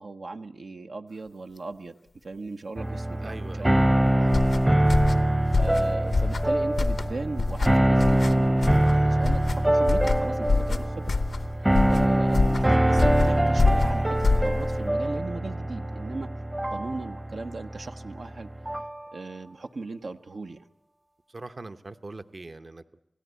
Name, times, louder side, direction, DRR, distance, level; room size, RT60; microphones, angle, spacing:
voice 1, 0.0-1.9 2.2-3.8 4.5-4.8 5.5-11.2 11.6-16.3 16.7-18.5 19.1-20.7, right 3 dB, 80° right, 5 dB, 0.9 m, -38 dB
sound 1, 2.8-19.0, right 1 dB, 20° right, 0.8 m, -24 dB
voice 2, 3.2-3.8 4.2-4.4 21.3-23.1, right 2 dB, 50° right, 9 dB, 0.9 m, -42 dB
sound 2, 4.2-14.9, left 3 dB, 90° left, 0.8 m, -26 dB
28.0 x 17.0 x 8.2 m, 0.88 s
wide cardioid pair, 70°, 0 cm